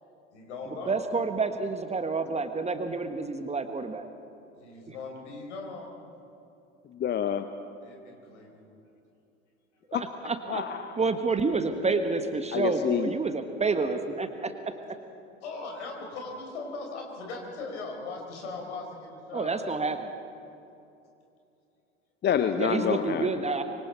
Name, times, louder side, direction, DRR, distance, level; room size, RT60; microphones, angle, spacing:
voice 1, 0.3-1.0 4.6-5.9 7.8-8.5 15.4-19.8, left 3 dB, 70° left, 2 dB, 4.4 m, -39 dB
voice 2, 0.9-4.1 10.2-10.6 11.0-14.3 19.3-20.0 22.6-23.6, right 4 dB, 15° right, 8 dB, 1.4 m, -28 dB
voice 3, 6.9-7.4 9.9-10.0 10.5-11.0 12.5-13.1 22.2-23.5, left 8 dB, 30° left, 9 dB, 0.9 m, -28 dB
25.0 x 24.0 x 4.5 m, 2.7 s
figure-of-eight pair, 70°, 37 cm